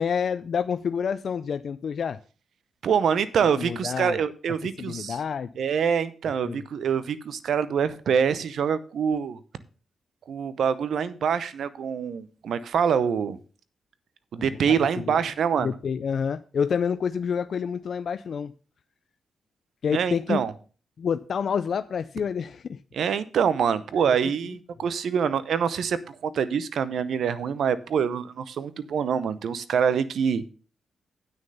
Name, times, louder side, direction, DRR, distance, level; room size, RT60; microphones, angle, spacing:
voice 1, 0.0-2.2 3.6-4.2 4.8-5.5 6.4-6.6 14.4-14.6 15.0-15.2 15.6-18.5 19.8-20.4 21.0-22.8 24.1-24.2, left 7 dB, 65° left, 0.4 m, -28 dB
voice 2, 2.8-5.2 5.6-9.4 10.3-13.4 14.3-15.7 19.9-20.5 22.9-30.4, right 7 dB, 75° right, 0.8 m, -25 dB
9.0 x 6.5 x 5.5 m
cardioid pair, 65°, 0 cm